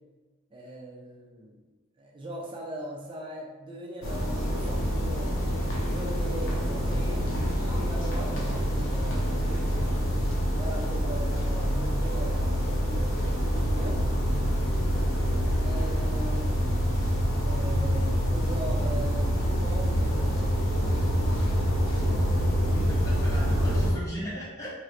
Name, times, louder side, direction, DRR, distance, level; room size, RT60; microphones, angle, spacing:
voice 1, 0.5-1.6 2.0-5.4 5.8-7.3 7.6-9.4 10.1-10.2 10.6-14.1 15.6-16.6 17.4-20.6, right 1 dB, 25° right, -2 dB, 0.3 m, -40 dB
sound 1, 4.0-23.9, equal, 70° left, 0.7 m, -26 dB
voice 2, 22.6-24.7, equal, 15° left, -6 dB, 0.7 m, -37 dB
4.2 x 2.1 x 2.4 m, 1.2 s
head